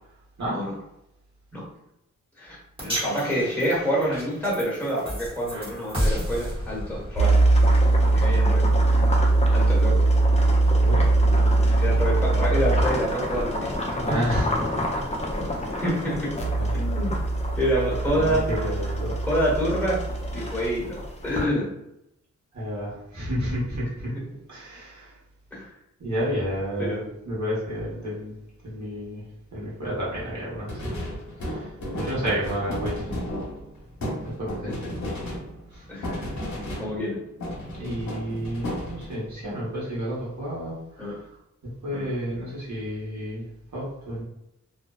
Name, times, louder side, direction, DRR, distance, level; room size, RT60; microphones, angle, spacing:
voice 1, 2.4-7.4 8.1-8.7 9.5-10.1 11.8-14.2 15.4-15.5 15.8-16.3 16.7-17.2 17.6-18.5 19.3-20.0 20.3-21.7 25.5-25.7 26.8-27.0 34.6-34.7 35.0-35.1 35.9-36.3 36.8-37.2 41.0-41.2 41.9-42.1, equal, 5° left, -6 dB, 1.1 m, -27 dB
sound 1, 2.8-9.1, equal, 15° right, 0.9 m, -33 dB
sound 2, 7.2-21.4, right 2 dB, 20° left, 0.5 m, -22 dB
voice 2, 14.0-15.0 15.6-15.8 16.6-16.7 18.1-19.2 22.5-24.1 24.5-25.2 26.0-27.0 27.2-28.3 28.6-30.9 31.4-33.1 34.2-34.7 35.7-35.9 37.7-41.3 41.8-44.2, equal, 70° right, -6 dB, 1.1 m, -31 dB
sound 3, 30.7-37.1 37.4-39.3, equal, 65° left, 0.8 m, -33 dB
2.5 x 2.1 x 2.3 m, 0.84 s
wide cardioid pair, 100°, 30 cm